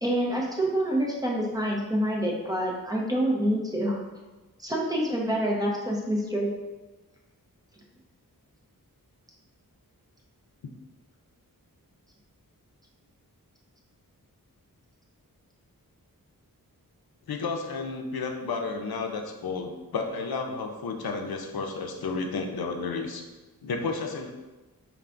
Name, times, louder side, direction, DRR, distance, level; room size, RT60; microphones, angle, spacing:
voice 1, 0.0-4.0 4.6-6.5, right 1 dB, 10° right, -3 dB, 0.8 m, -27 dB
voice 2, 17.3-23.3 23.6-24.3, left 4 dB, 85° left, 4 dB, 0.6 m, -32 dB
4.8 x 2.3 x 3.7 m, 1.2 s
wide cardioid pair, 90°, 36 cm